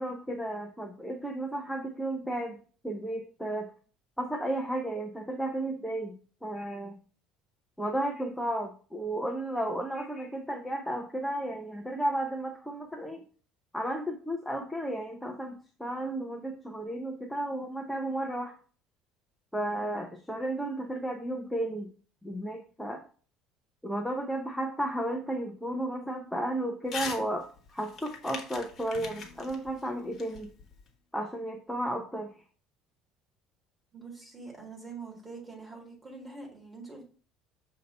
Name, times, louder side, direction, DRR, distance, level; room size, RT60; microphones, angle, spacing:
voice 1, 0.0-2.6 2.8-3.7 4.2-6.1 6.4-6.9 7.8-13.2 13.7-18.5 19.5-21.9 22.2-23.0 23.8-30.5 31.1-32.3, right 1 dB, ahead, 2 dB, 0.6 m, -33 dB
Crumpling crinkling / Tearing, 26.9-27.2 27.6-30.9, left 5 dB, 30° left, 1.2 m, -41 dB
Drum, 28.9-31.0, left 4 dB, 80° left, 1.2 m, -54 dB
voice 2, 33.9-37.0, right 4 dB, 15° right, 0 dB, 2.0 m, -44 dB
6.5 x 2.8 x 5.2 m, 0.40 s
cardioid pair, 160°, 0 cm